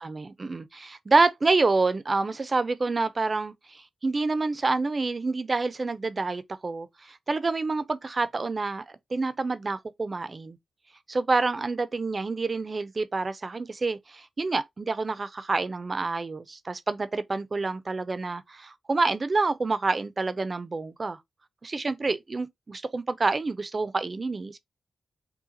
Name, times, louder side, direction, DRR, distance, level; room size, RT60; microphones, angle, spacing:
voice 1, 0.0-10.6 11.1-21.2 21.6-24.6, right 3 dB, 40° right, 0.5 m, -28 dB
5.6 x 2.2 x 2.6 m
cardioid pair, 65°, 0 cm